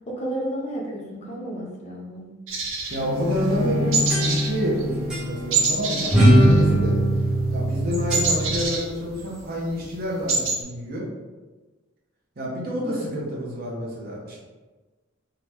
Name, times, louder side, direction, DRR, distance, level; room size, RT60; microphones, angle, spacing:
voice 1, 0.1-2.3, right 1 dB, 30° left, -2 dB, 0.6 m, -32 dB
sound 1, 2.5-3.6 3.9-4.5 4.8-5.0 5.5-7.0 7.3-9.4 9.8-9.9 10.1-10.6, right 4 dB, 75° right, 0.7 m, -25 dB
voice 2, 2.9-7.0 7.5-11.1 12.4-14.4, equal, 45° right, -4 dB, 0.8 m, -28 dB
Bowed string instrument, 3.0-8.3, left 3 dB, 90° left, 1.0 m, -30 dB
sound 2, 3.6-4.8 5.1-5.3 6.1-8.7, right 1 dB, 5° right, 0.7 m, -20 dB
3.7 x 2.2 x 3.0 m, 1.2 s
head